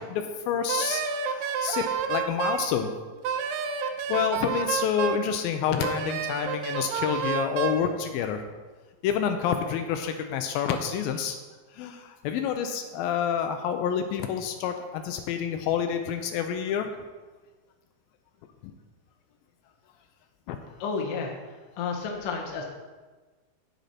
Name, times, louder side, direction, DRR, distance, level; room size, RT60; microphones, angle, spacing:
voice 1, 0.0-2.9 3.4-3.7 4.1-8.5 9.0-11.4 11.7-16.9 18.6-18.7 20.5-20.6, left 8 dB, 80° left, 6 dB, 2.3 m, -28 dB
Wind instrument woodwind instrument, 0.7-2.7 3.2-5.3 5.8-7.8, right 7 dB, 80° right, 2.2 m, -29 dB
voice 2, 20.8-21.3 21.8-22.7, left 5 dB, 60° left, 0 dB, 1.5 m, -31 dB
9.0 x 8.1 x 4.2 m, 1.3 s
omnidirectional pair, 4.4 m